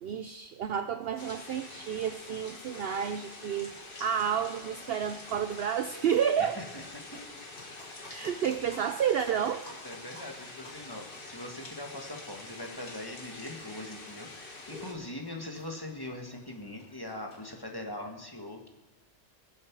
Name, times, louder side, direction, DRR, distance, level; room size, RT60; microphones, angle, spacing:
voice 1, 0.0-3.7 4.0-6.6 8.1-9.6, right 8 dB, 60° right, 10 dB, 0.7 m, -30 dB
sound 1, 1.0-17.6, left 1 dB, 65° left, 4.4 m, -55 dB
sound 2, 1.2-14.9, left 2 dB, 45° left, 1.6 m, -46 dB
voice 2, 6.4-7.3 9.8-18.7, left 1 dB, 20° left, 1 dB, 1.6 m, -42 dB
22.0 x 7.6 x 4.7 m, 1.2 s
omnidirectional pair, 1.3 m